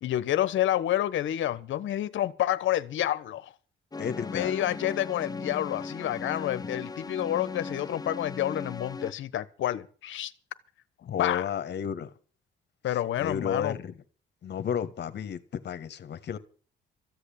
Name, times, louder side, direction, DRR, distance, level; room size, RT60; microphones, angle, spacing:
voice 1, 0.0-3.5 4.3-10.3 11.2-11.4 12.8-13.8, left 12 dB, 75° left, 1.2 m, -29 dB
sound 1, 3.9-9.1, left 4 dB, 20° left, 0.7 m, -38 dB
voice 2, 4.0-4.6 11.0-12.1 13.2-14.0 14.4-16.4, left 8 dB, 60° left, 1.5 m, -32 dB
14.5 x 8.0 x 8.8 m
cardioid pair, 90°, 20 cm